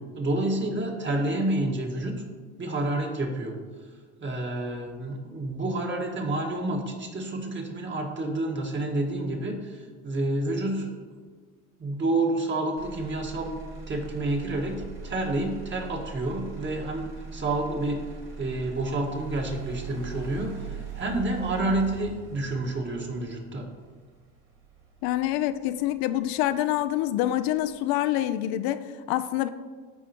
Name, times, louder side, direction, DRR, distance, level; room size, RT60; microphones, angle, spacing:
voice 1, 0.1-2.2 2.6-3.6 4.2-11.0 11.8-13.6 13.9-18.1 18.4-23.7, right 2 dB, 30° right, 1 dB, 1.6 m, -29 dB
Motor vehicle (road), 12.8-26.8 27.2-27.8, right 4 dB, 65° right, 2.2 m, -42 dB
voice 2, 25.0-29.5, left 13 dB, 75° left, 11 dB, 0.5 m, -26 dB
13.5 x 5.0 x 2.9 m, 1.5 s
supercardioid pair, 100°, 36 cm